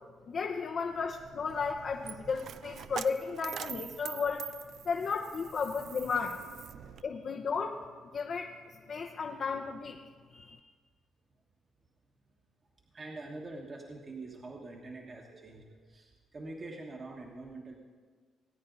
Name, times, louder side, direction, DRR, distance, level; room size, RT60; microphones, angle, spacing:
voice 1, 0.3-4.5 4.8-6.4 7.0-7.8 8.1-8.6 8.9-10.0 10.3-10.6, left 5 dB, 55° left, 2 dB, 0.7 m, -34 dB
Coin (dropping), 0.9-7.0, right 8 dB, 65° right, 0.4 m, -45 dB
voice 2, 12.9-17.8, right 2 dB, 35° right, 0 dB, 1.4 m, -45 dB
19.0 x 9.2 x 3.9 m, 1.5 s
cardioid pair, 90°, 0 cm